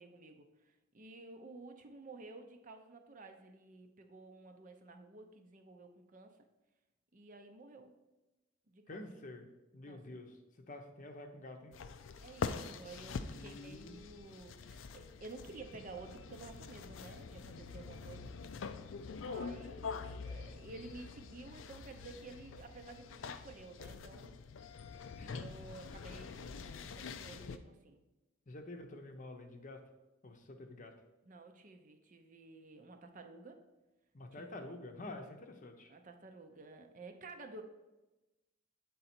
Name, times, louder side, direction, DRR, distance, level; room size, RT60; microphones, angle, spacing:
voice 1, 0.0-6.4 7.1-7.9 8.7-9.0 9.9-10.2 12.2-18.3 19.1-24.4 25.3-28.0 31.2-33.6 34.4-34.6 35.9-37.6, right 3 dB, 40° right, 6 dB, 0.6 m, -52 dB
voice 2, 8.9-9.5 9.7-10.4 10.7-11.7 13.3-14.0 25.1-25.4 28.5-29.8 30.2-30.9 34.1-35.9, left 2 dB, 40° left, 4 dB, 0.7 m, -48 dB
sound 1, 11.7-27.6, left 5 dB, 75° left, 0.4 m, -45 dB
8.3 x 3.9 x 4.3 m, 1.0 s
head